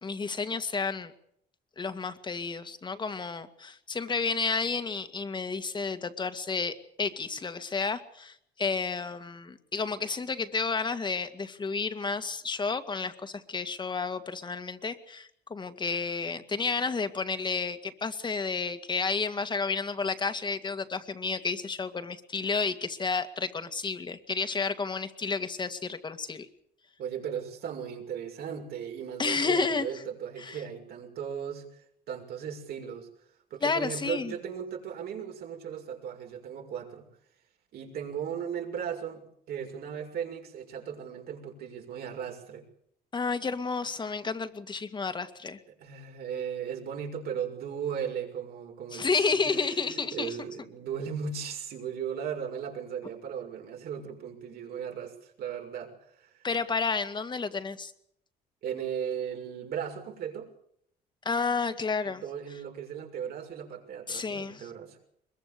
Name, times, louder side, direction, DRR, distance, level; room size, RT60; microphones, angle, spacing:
voice 1, 0.0-1.1 1.8-26.5 29.2-30.0 30.4-30.6 33.6-34.3 43.1-45.6 48.9-50.4 56.4-57.9 61.3-62.2 64.1-64.7, left 4 dB, 25° left, 9 dB, 2.2 m, -31 dB
voice 2, 27.0-31.7 32.1-33.1 33.5-37.1 37.7-42.7 45.7-56.4 58.6-60.5 62.0-65.0, right 8 dB, 65° right, 3 dB, 6.3 m, -37 dB
23.0 x 22.5 x 6.9 m, 0.69 s
cardioid pair, 110°, 17 cm